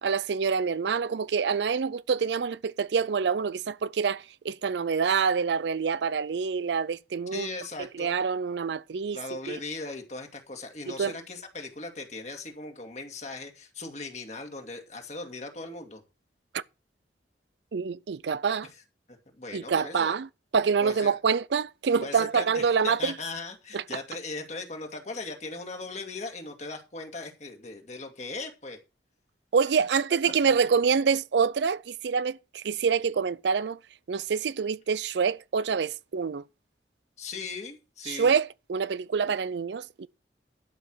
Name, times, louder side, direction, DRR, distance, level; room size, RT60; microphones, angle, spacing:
voice 1, 0.0-7.5 8.0-9.2 9.5-9.6 10.9-11.2 16.5-16.6 17.7-18.7 19.5-20.3 20.5-23.1 23.7-23.8 29.5-33.8 34.1-36.4 38.1-40.1, right 6 dB, 75° right, 0.4 m, -26 dB
voice 2, 7.3-8.1 9.1-16.0 19.1-20.1 20.8-21.1 22.0-28.8 37.2-38.3, left 3 dB, 40° left, 2.1 m, -38 dB
12.0 x 5.7 x 6.2 m
head